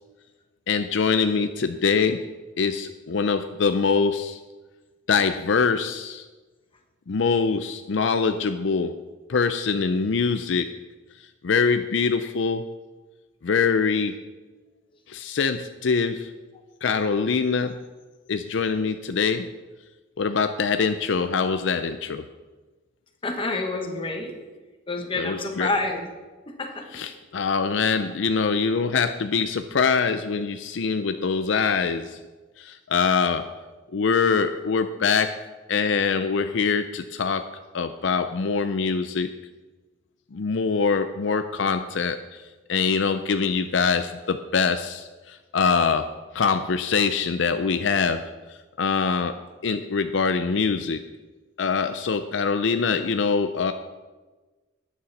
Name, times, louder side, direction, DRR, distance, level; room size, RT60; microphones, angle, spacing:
voice 1, 0.7-2.2 2.6-4.4 5.1-6.2 7.1-9.0 9.3-10.7 11.4-12.7 13.4-14.1 15.1-16.3 16.8-17.8 18.3-19.5 20.2-22.2 25.1-25.7 26.9-32.2 32.6-33.5 33.9-35.4 35.7-37.5 37.7-39.3 40.3-42.4 42.7-46.1 46.3-48.2 48.8-49.4 49.6-51.0 51.6-53.7, left 5 dB, 70° left, 9 dB, 0.5 m, -24 dB
voice 2, 23.2-24.4 24.9-26.1 26.6-26.9, left 2 dB, 25° left, 3 dB, 1.4 m, -28 dB
12.5 x 9.4 x 4.2 m, 1.3 s
head